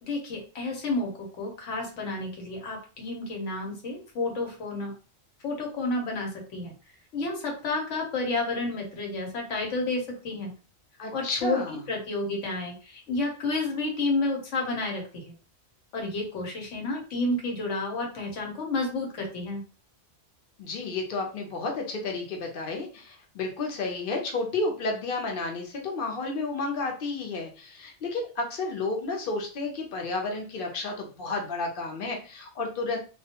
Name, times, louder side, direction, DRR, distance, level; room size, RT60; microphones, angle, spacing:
voice 1, 0.0-4.9 5.4-6.7 7.1-10.5 11.1-15.3 15.9-19.6, left 2 dB, 85° left, 1 dB, 1.2 m, -30 dB
voice 2, 11.0-11.8 20.6-33.0, left 3 dB, 55° left, 2 dB, 0.8 m, -31 dB
2.3 x 2.2 x 2.8 m, 0.37 s
omnidirectional pair, 1.2 m